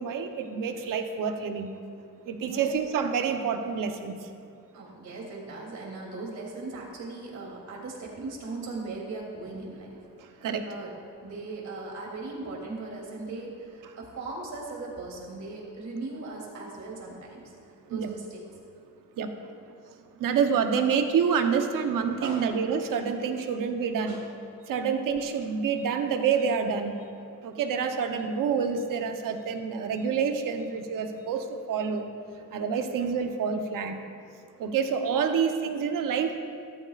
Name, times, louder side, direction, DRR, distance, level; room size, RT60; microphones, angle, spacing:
voice 1, 0.0-1.7 2.3-4.1 10.4-10.6 17.9-18.1 19.2-19.3 20.2-24.2 24.7-27.0 27.4-32.1 32.5-34.0 34.6-36.4, right 6 dB, 80° right, 6 dB, 1.0 m, -27 dB
voice 2, 4.7-10.9 11.2-17.5 17.9-18.5 22.2-22.6 24.1-24.2 34.7-34.8, right 3 dB, 60° right, -2 dB, 3.0 m, -38 dB
14.0 x 12.5 x 2.5 m, 2.4 s
cardioid pair, 105°, 32 cm